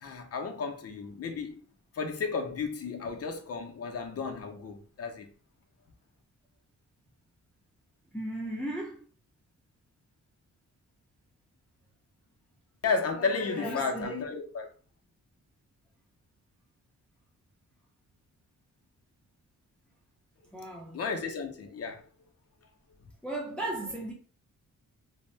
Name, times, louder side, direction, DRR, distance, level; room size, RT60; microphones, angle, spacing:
voice 1, 0.0-1.6 1.9-5.3 12.8-14.7 20.9-22.1, left 4 dB, 50° left, 0.6 m, -33 dB
voice 2, 8.1-9.0 13.5-14.1 20.5-21.0 23.2-24.1, right 1 dB, 5° left, 0.5 m, -36 dB
2.6 x 2.1 x 3.2 m
wide cardioid pair, 165°, 33 cm